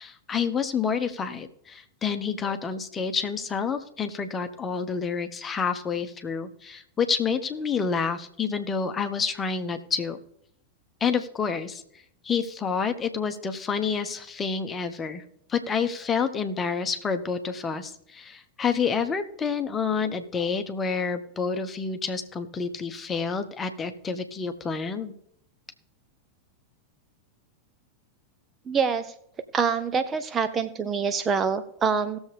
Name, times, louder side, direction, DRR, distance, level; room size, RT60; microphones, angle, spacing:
voice 1, 0.0-10.2 11.0-11.8 12.2-15.2 15.5-25.1, left 6 dB, 20° left, 8 dB, 1.0 m, -28 dB
voice 2, 28.7-29.1 29.5-32.2, right 6 dB, 20° right, 10 dB, 0.6 m, -25 dB
18.0 x 7.2 x 3.4 m, 0.70 s
figure-of-eight pair, 90°, 0 cm